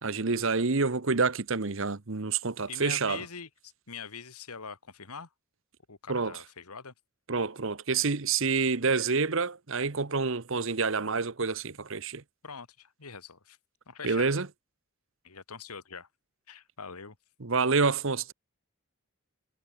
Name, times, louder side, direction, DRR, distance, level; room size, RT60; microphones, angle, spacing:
voice 1, 0.0-3.2 6.1-6.4 7.3-12.2 14.0-14.5 17.4-18.3, right 4 dB, 60° right, 1.0 m, -28 dB
voice 2, 2.7-5.3 5.9-6.9 12.4-13.6 13.9-14.4 15.2-16.1 16.5-17.2, left 6 dB, 90° left, 1.9 m, -43 dB
head